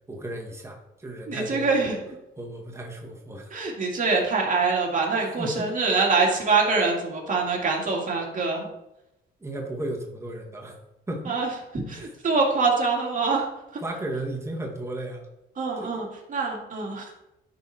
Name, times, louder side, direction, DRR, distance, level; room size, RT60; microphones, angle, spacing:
voice 1, 0.1-1.9 2.4-3.5 5.2-5.7 9.4-10.8 11.1-11.3 12.0-12.1 13.8-15.3 15.8-15.9, right 1 dB, 15° right, 0 dB, 1.6 m, -34 dB
voice 2, 1.3-2.0 3.5-8.7 11.2-13.8 15.5-17.1, right 4 dB, 40° right, -1 dB, 2.5 m, -25 dB
10.5 x 4.2 x 4.3 m, 0.91 s
cardioid pair, 90°, 20 cm